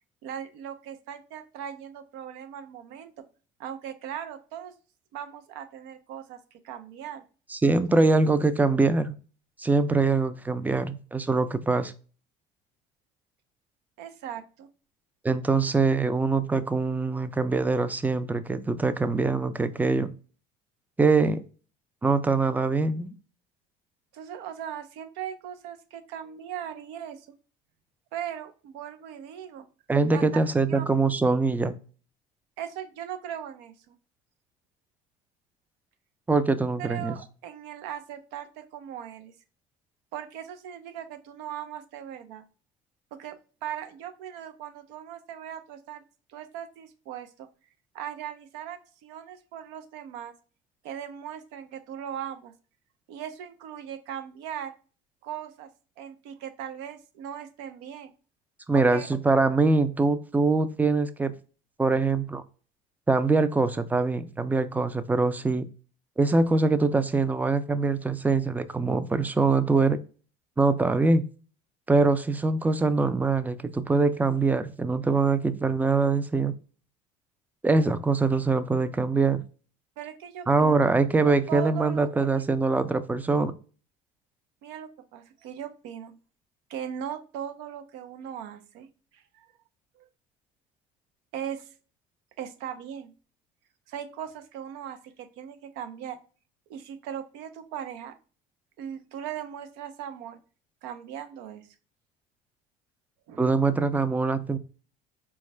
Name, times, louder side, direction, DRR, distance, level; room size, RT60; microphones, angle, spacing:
voice 1, 0.2-3.3 3.6-4.7 5.1-6.4 6.6-7.2 14.0-14.7 24.1-27.3 28.1-29.7 30.1-30.2 30.7-31.0 32.6-34.0 36.8-39.3 40.1-42.4 43.1-47.5 47.9-50.3 50.8-52.5 53.1-54.7 55.2-55.7 56.0-58.1 58.7-59.1 80.0-80.7 81.2-82.1 82.3-82.4 84.6-86.2 86.7-88.9 89.1-89.5 90.0-90.1 91.3-91.7 92.4-93.1 93.9-96.2 96.7-98.2 98.8-100.4 100.8-101.7 103.3-103.5, right 9 dB, 75° right, 9 dB, 0.6 m, -39 dB
voice 2, 7.5-9.1 9.6-11.9 15.2-20.1 21.0-21.4 22.0-23.1 29.9-31.8 36.3-37.2 58.7-61.3 61.8-62.4 63.1-65.7 66.2-70.0 70.6-71.3 71.9-76.6 77.6-79.4 80.5-83.5 103.4-104.6, right 3 dB, 10° right, 12 dB, 0.3 m, -23 dB
4.2 x 2.3 x 3.1 m, 0.37 s
supercardioid pair, 100°, 18 cm